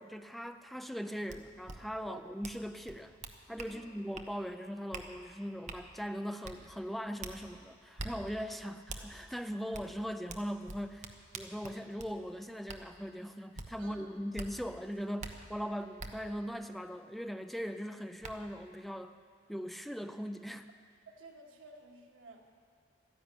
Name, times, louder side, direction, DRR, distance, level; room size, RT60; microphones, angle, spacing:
voice 1, 0.0-3.2 3.5-19.1 19.5-20.7, equal, ahead, 9 dB, 0.4 m, -40 dB
sound 1, 1.3-1.4 1.7-1.8 2.4-2.6 2.9-3.7 4.1-4.3 4.9-5.1 5.7-5.8 6.4-6.6 7.2-7.4 8.0-8.1 8.9-9.0 9.7-9.9 10.3-12.1 12.7-12.8 13.6-13.7 14.4-14.5 15.2-15.3 16.0-16.1 17.6-17.7 18.2-18.3, right 3 dB, 40° right, 1.0 m, -43 dB
voice 2, 13.8-14.1 21.2-22.5, right 3 dB, 80° right, 1 dB, 1.7 m, -53 dB
13.0 x 10.5 x 9.2 m, 2.2 s
head